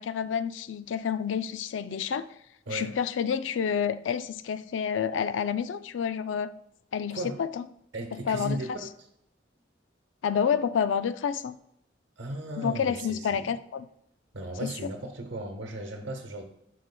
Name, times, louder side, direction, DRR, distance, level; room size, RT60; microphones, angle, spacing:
voice 1, 0.0-2.3 2.7-6.5 6.9-7.6 8.1-8.6 10.2-11.6 12.6-13.9 14.6-14.9, left 7 dB, 90° left, 13 dB, 0.4 m, -29 dB
voice 2, 7.1-7.4 7.9-9.1 12.2-13.5 14.3-16.4, right 1 dB, 80° right, 3 dB, 0.9 m, -36 dB
11.0 x 4.5 x 2.2 m, 0.76 s
head